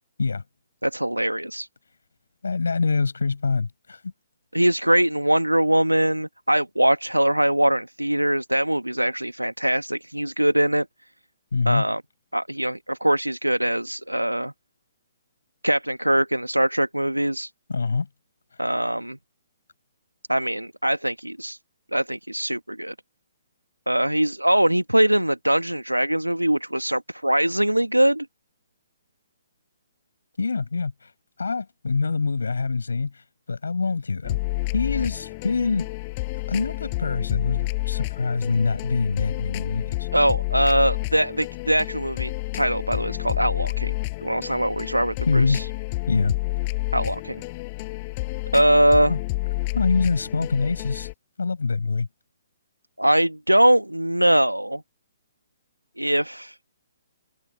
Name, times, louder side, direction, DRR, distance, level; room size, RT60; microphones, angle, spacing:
voice 1, 0.8-1.7 4.5-10.8 11.6-12.0 12.3-14.5 15.6-17.5 18.6-19.2 20.3-21.6 21.9-22.9 23.9-28.3 40.1-45.7 46.9-47.4 48.5-49.1 53.0-54.8 56.0-56.6, right 1 dB, 90° right, 1.6 m, -22 dB
voice 2, 2.4-4.1 11.5-11.9 17.7-18.1 18.5-18.6 30.4-31.1 31.4-34.4 34.7-35.9 36.5-40.1 45.3-45.6 46.1-46.3 49.1-49.2 49.7-51.1 51.4-52.1, left 4 dB, 70° left, 6.1 m, -25 dB
sound 1, 34.2-51.1, left 23 dB, 30° left, 7.1 m, -30 dB
figure-of-eight pair, 130°, 0 cm